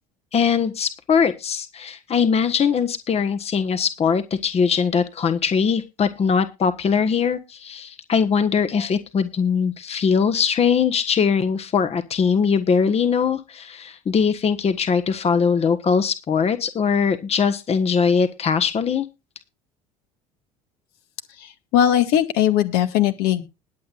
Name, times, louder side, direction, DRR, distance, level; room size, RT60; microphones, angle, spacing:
voice 1, 0.3-19.0, left 6 dB, 35° left, 11 dB, 1.4 m, -21 dB
voice 2, 21.4-23.4, left 10 dB, 65° left, 9 dB, 1.8 m, -19 dB
20.5 x 8.2 x 2.5 m, 0.27 s
hypercardioid pair, 65°, 18 cm